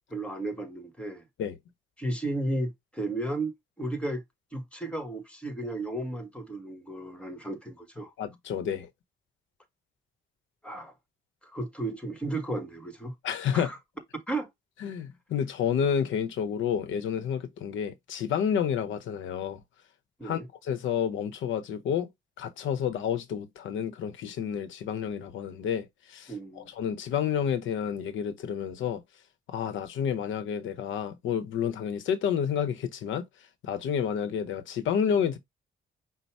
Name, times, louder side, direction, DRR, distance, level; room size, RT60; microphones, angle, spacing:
voice 1, 0.1-1.2 2.0-4.2 4.5-8.1 10.6-10.9 11.4-13.1 13.5-13.8 14.3-14.5 20.2-20.5 26.3-26.7, right 2 dB, 5° left, 1.4 m, -34 dB
voice 2, 8.2-8.9 13.2-13.7 14.8-19.6 20.2-22.1 22.4-29.0 29.5-33.2 33.6-35.4, left 8 dB, 80° left, 0.9 m, -30 dB
5.5 x 2.2 x 4.5 m
cardioid pair, 90°, 20 cm